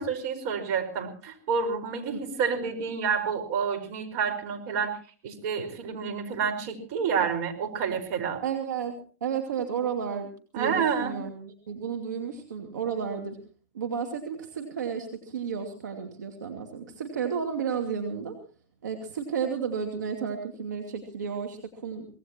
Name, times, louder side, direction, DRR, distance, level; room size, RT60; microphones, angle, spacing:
voice 1, 0.0-5.0 5.2-8.4 10.5-11.2, right 6 dB, 55° right, 6 dB, 4.8 m, -29 dB
voice 2, 8.4-8.9 9.2-10.3 10.5-13.4 13.7-18.4 18.8-22.1, right 7 dB, 80° right, 5 dB, 2.6 m, -32 dB
24.5 x 18.5 x 2.9 m, 0.38 s
hypercardioid pair, 110°, 9 cm